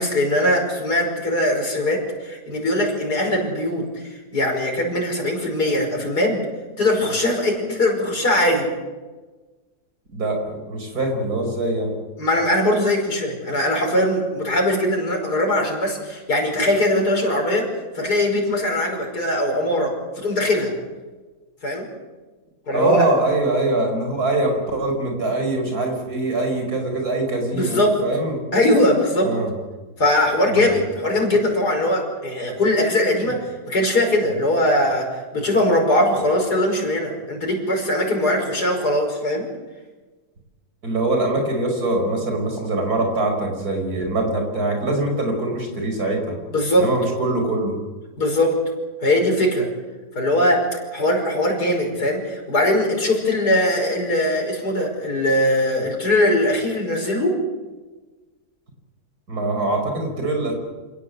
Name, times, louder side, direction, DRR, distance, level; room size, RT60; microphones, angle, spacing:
voice 1, 0.0-6.5 6.8-8.7 12.2-20.7 21.6-21.9 22.7-23.1 27.5-28.0 28.5-29.4 30.0-39.5 46.5-47.0 48.2-48.6 49.0-49.7 50.2-57.4, left 1 dB, 70° left, 1 dB, 5.9 m, -21 dB
voice 2, 10.1-11.9 22.7-28.4 29.2-29.5 30.5-30.7 40.8-46.4 46.8-47.8 59.3-60.5, right 2 dB, 65° right, 4 dB, 5.7 m, -23 dB
27.5 x 17.5 x 8.2 m, 1.3 s
omnidirectional pair, 1.7 m